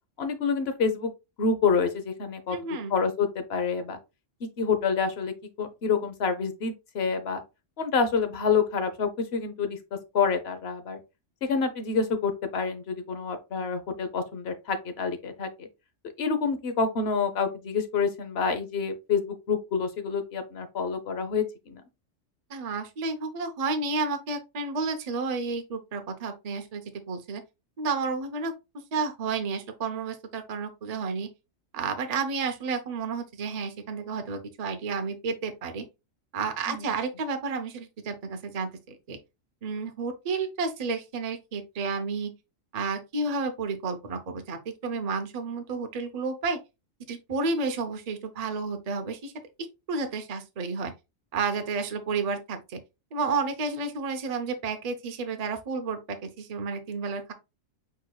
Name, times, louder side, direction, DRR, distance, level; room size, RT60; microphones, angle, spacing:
voice 1, 0.2-1.1 1.4-4.0 4.6-5.3 5.6-7.4 7.8-9.8 10.1-11.0 11.4-15.5 16.2-21.8 36.7-36.8, left 5 dB, 55° left, 1.0 m, -27 dB
voice 2, 2.5-2.9 22.5-27.4 27.8-28.5 28.9-31.3 31.7-35.8 36.3-39.2 39.6-42.3 42.7-46.6 47.1-49.3 49.9-50.9 51.3-52.8 53.1-57.3, right 4 dB, 40° right, 0.6 m, -31 dB
4.6 x 4.6 x 2.3 m
omnidirectional pair, 1.4 m